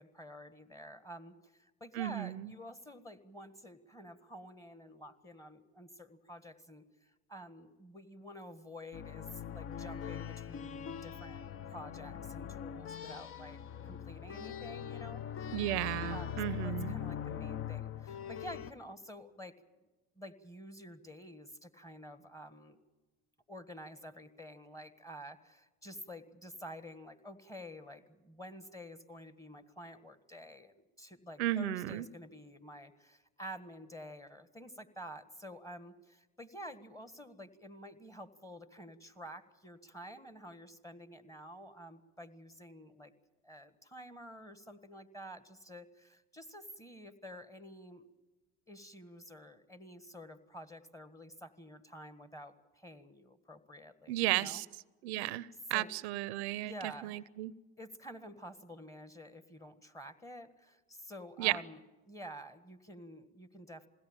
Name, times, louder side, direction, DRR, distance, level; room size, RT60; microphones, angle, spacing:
voice 1, 0.0-13.6 13.8-15.6 16.1-19.9 20.1-22.8 23.5-43.1 43.4-48.1 48.7-54.6 55.7-55.9 56.6-57.3 57.8-63.9, equal, 10° left, 10 dB, 1.6 m, -50 dB
voice 2, 1.9-2.5 15.5-16.9 31.4-32.0 54.1-54.6 55.0-57.5 61.4-61.6, right 15 dB, 80° right, 21 dB, 0.6 m, -34 dB
sound 1, 8.9-18.7, left 9 dB, 40° left, 0.8 m, -42 dB
21.0 x 17.0 x 8.8 m, 1.2 s
supercardioid pair, 85°, 32 cm